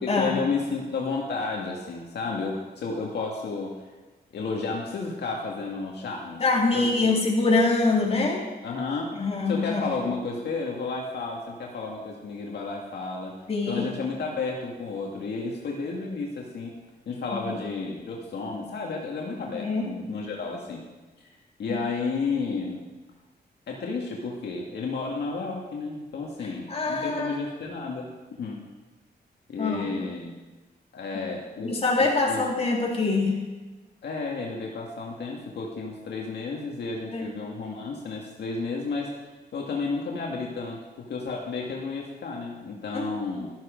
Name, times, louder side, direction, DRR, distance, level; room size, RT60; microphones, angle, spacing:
voice 1, 0.0-3.8 4.3-6.4 6.7-7.1 8.6-13.4 13.7-16.7 17.1-20.8 21.2-22.8 23.7-28.6 29.5-30.3 30.9-32.5 34.0-39.1 39.5-43.5, left 4 dB, 80° left, -1 dB, 1.8 m, -32 dB
voice 2, 6.4-8.5 9.2-9.8 13.5-13.8 17.3-17.5 19.5-19.9 21.7-21.8 26.7-27.4 29.6-29.8 31.6-33.4 37.1-37.3 42.9-43.1, left 3 dB, 35° left, -2 dB, 3.5 m, -24 dB
13.0 x 12.5 x 5.1 m, 1.2 s
cardioid pair, 110°, 17 cm